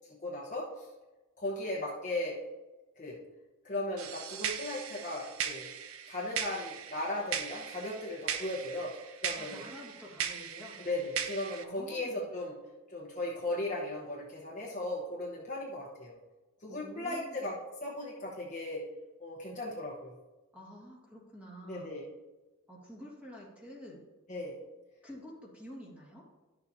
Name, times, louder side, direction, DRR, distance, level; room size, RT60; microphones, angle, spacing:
voice 1, 0.2-0.9 1.4-2.4 3.0-3.2 3.6-5.7 6.1-8.9 9.2-9.6 10.8-12.5 12.9-16.1 16.6-18.9 19.2-20.1 21.7-22.1 24.3-24.6, left 1 dB, 35° left, -4 dB, 1.1 m, -37 dB
sound 1, 4.0-11.6, right 8 dB, 70° right, 0.6 m, -39 dB
voice 2, 9.4-10.8 11.6-12.2 16.7-17.4 20.5-21.9 22.7-24.0 25.0-26.2, equal, 5° right, -4 dB, 1.9 m, -48 dB
11.5 x 6.8 x 2.8 m, 1.2 s
head